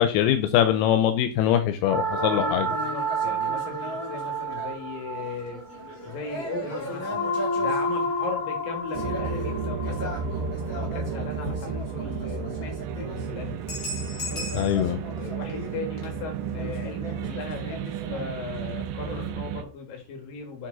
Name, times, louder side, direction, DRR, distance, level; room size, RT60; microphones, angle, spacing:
voice 1, 0.0-2.7 14.5-15.0, left 10 dB, 90° left, 8 dB, 2.7 m, -22 dB
sound 1, 1.8-12.0, right 1 dB, 15° left, 1.9 m, -30 dB
sound 2, 2.0-19.3, left 1 dB, 35° left, 1.5 m, -38 dB
voice 2, 2.1-5.6 6.0-7.3 7.6-13.7 15.2-20.7, left 4 dB, 65° left, 3 dB, 3.5 m, -38 dB
sound 3, 9.0-19.6, right 6 dB, 80° right, 2.2 m, -33 dB
7.6 x 4.5 x 4.0 m, 0.35 s
omnidirectional pair, 4.4 m